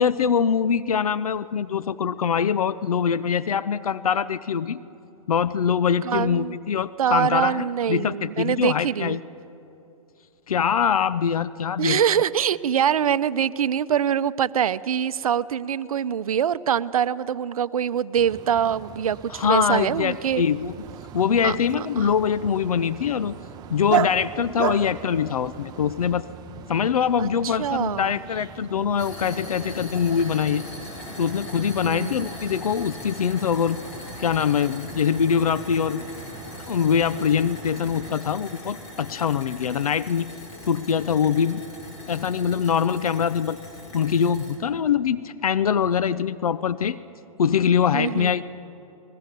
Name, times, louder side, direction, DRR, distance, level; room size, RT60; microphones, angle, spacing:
voice 1, 0.0-4.8 5.3-9.2 10.5-12.0 19.3-20.7 21.1-23.3 23.7-26.3 26.7-30.6 31.2-33.8 34.2-36.0 36.7-40.3 40.7-41.6 42.1-43.6 43.9-47.0 47.4-48.4, left 7 dB, 80° left, 16 dB, 0.6 m, -23 dB
voice 2, 6.0-6.6 7.0-9.2 11.8-20.4 21.4-22.1 27.2-28.2 31.8-32.3 47.9-48.3, right 9 dB, 75° right, 16 dB, 0.7 m, -24 dB
sound 1, 18.2-38.1, right 9 dB, 20° right, 0.7 m, -44 dB
Dog, 20.8-26.1, right 10 dB, 60° right, 1.0 m, -31 dB
sound 2, 29.0-44.6, left 1 dB, 30° left, 5.1 m, -40 dB
22.0 x 20.0 x 6.8 m, 2.8 s
hypercardioid pair, 120°, 18 cm